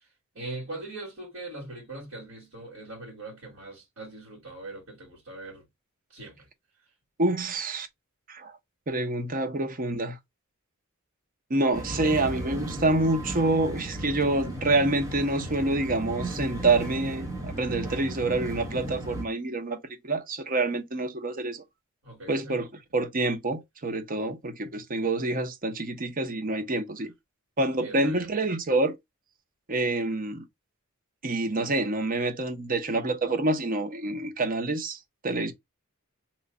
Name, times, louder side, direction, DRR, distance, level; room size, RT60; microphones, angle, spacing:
voice 1, 0.3-5.6 6.1-6.5 22.0-22.6 27.8-28.3, right 2 dB, 65° right, 1.9 m, -41 dB
voice 2, 7.2-7.9 8.3-8.5 8.9-10.2 11.5-19.8 20.0-21.6 22.3-27.1 27.6-29.0 29.7-30.4 31.2-35.0 35.2-35.5, right 2 dB, 40° right, 0.7 m, -27 dB
sound 1, 11.7-19.2, right 1 dB, 15° right, 0.9 m, -35 dB
3.1 x 2.2 x 3.7 m
head